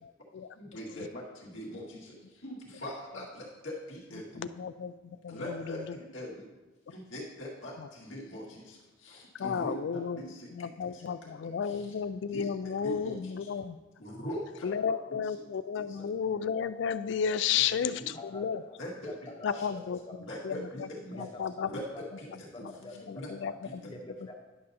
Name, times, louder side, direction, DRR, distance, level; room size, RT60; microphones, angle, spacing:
voice 1, 0.0-0.6 0.9-1.1 4.3-6.0 7.8-7.9 9.3-10.2 10.5-13.8 14.6-18.6 19.4-20.0 20.4-20.9 21.1-21.7 22.3-22.7 23.1-23.8, left 7 dB, 65° left, 14 dB, 0.3 m, -33 dB
voice 2, 0.5-4.4 5.3-6.5 6.9-11.1 11.6-11.9 12.3-12.5 12.8-13.5 14.0-14.7 15.1-15.3 15.8-16.1 17.5-18.1 18.8-19.7 20.2-21.2 21.6-21.8 22.2-22.6 23.1-23.3 23.6-23.7, equal, 85° left, -4 dB, 1.9 m, -42 dB
voice 3, 18.1-18.8 19.0-20.1 21.1-23.6 23.9-24.3, left 2 dB, 25° left, 2 dB, 0.8 m, -47 dB
11.0 x 6.4 x 2.8 m, 1.2 s
head